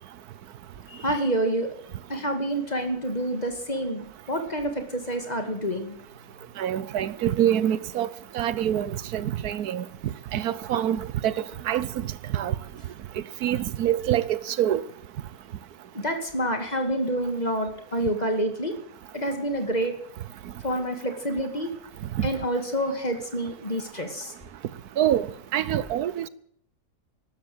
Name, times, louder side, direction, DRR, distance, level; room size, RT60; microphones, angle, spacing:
voice 1, 0.9-1.7 2.1-6.0 15.9-18.7 19.1-19.9 20.6-21.7 22.2-24.3, right 1 dB, 25° left, 2.4 m, -28 dB
voice 2, 6.6-8.1 8.3-9.8 10.3-11.3 11.7-11.9 12.3-12.5 13.4-14.8 22.2-22.3 25.0-26.3, right 11 dB, 90° right, 1.3 m, -25 dB
13.5 x 12.0 x 7.9 m
omnidirectional pair, 1.6 m